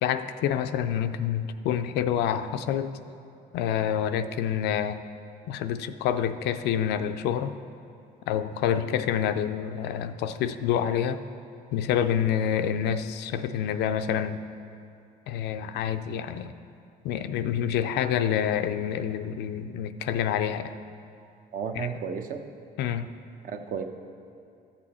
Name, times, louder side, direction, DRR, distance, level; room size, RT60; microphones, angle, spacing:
voice 1, 0.0-2.9 3.5-5.0 5.5-7.5 8.3-11.2 11.7-14.4 15.3-16.5 17.0-20.7 21.8-21.9 22.8-23.1, left 9 dB, 85° left, 10 dB, 0.5 m, -27 dB
voice 2, 21.5-22.4 23.4-23.8, right 6 dB, 55° right, 6 dB, 0.8 m, -33 dB
13.5 x 7.0 x 4.2 m, 2.5 s
cardioid pair, 110°, 17 cm